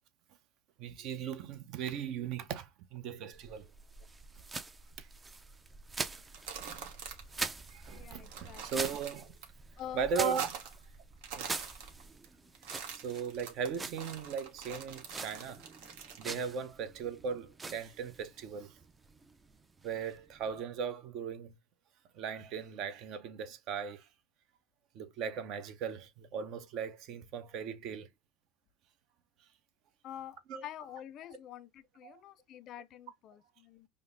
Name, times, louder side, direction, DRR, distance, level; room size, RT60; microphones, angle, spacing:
voice 1, 0.8-3.7 5.0-5.1 6.6-6.9 7.7-9.3 9.9-10.8 11.3-11.5 12.9-15.7 16.0-18.8 19.8-21.6 22.1-24.1 24.9-28.1 30.5-30.6 32.0-32.2, right 6 dB, 55° right, 0.7 m, -38 dB
sound 1, 3.3-20.6, right 3 dB, 15° right, 0.4 m, -45 dB
sound 2, 6.2-7.4 7.7-7.8 8.1-9.5 9.8-10.8 11.1-12.3 12.5-16.3, right 7 dB, 75° right, 1.1 m, -45 dB
voice 2, 7.9-8.6 9.8-10.1 30.0-33.9, left 11 dB, 45° left, 0.4 m, -47 dB
5.1 x 2.0 x 2.5 m
supercardioid pair, 115°, 0 cm